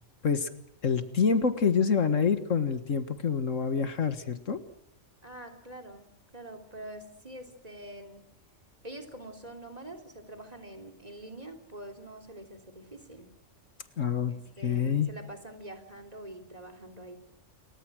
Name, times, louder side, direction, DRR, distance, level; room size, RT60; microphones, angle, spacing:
voice 1, 0.8-4.6 14.0-14.3 14.6-15.1, left 6 dB, 80° left, 10 dB, 2.0 m, -26 dB
voice 2, 5.2-8.2 8.8-13.3 14.3-17.2, right 1 dB, 30° right, 8 dB, 3.4 m, -45 dB
28.5 x 23.5 x 6.3 m, 0.68 s
omnidirectional pair, 1.3 m